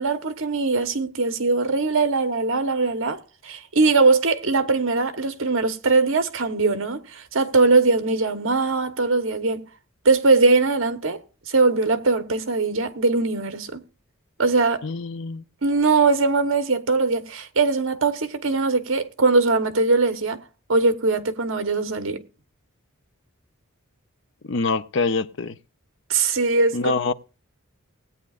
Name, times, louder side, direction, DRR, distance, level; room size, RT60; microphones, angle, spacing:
voice 1, 0.0-9.6 10.0-11.2 11.5-13.8 14.4-14.8 15.6-20.4 20.7-22.2 26.1-26.8, right 3 dB, 65° right, 1.1 m, -21 dB
voice 2, 14.8-15.4 24.4-25.6 26.7-27.1, left 4 dB, 55° left, 0.6 m, -25 dB
19.5 x 8.7 x 2.5 m
head